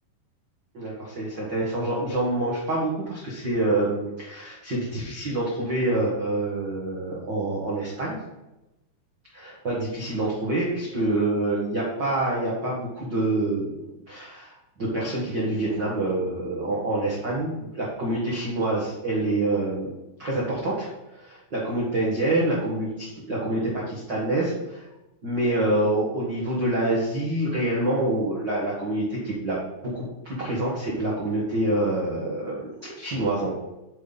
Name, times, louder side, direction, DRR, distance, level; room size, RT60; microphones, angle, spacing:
voice 1, 0.7-8.2 9.3-13.7 14.1-19.9 20.2-20.9 21.1-24.8 25.2-33.5, right 2 dB, 85° right, -6 dB, 0.9 m, -26 dB
8.7 x 6.9 x 4.1 m, 0.97 s
omnidirectional pair, 5.2 m